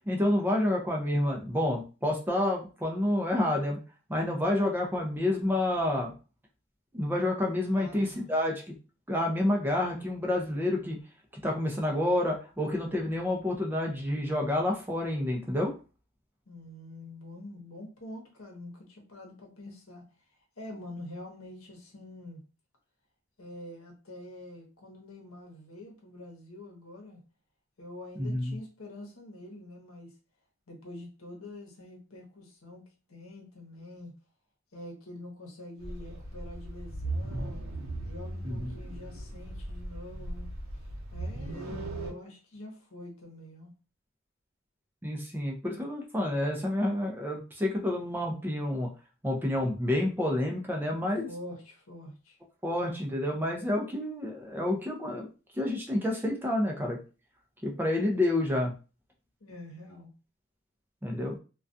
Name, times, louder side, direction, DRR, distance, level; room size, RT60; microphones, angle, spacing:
voice 1, 0.1-3.8 4.1-6.1 6.9-8.7 9.1-11.0 11.3-15.7 28.2-28.6 38.4-38.7 45.0-48.9 49.2-51.3 52.6-55.3 55.5-57.0 57.6-58.7 61.0-61.4, left 1 dB, 10° right, 0.4 m, -29 dB
voice 2, 7.8-8.3 16.5-20.0 20.6-22.4 23.4-27.2 27.8-30.1 30.7-34.1 34.7-37.7 38.0-40.5 41.1-43.7 51.3-52.4 59.4-60.1, left 1 dB, 80° left, 0.9 m, -46 dB
sound 1, 35.8-42.1, right 1 dB, 75° right, 0.7 m, -37 dB
2.3 x 2.2 x 2.5 m
head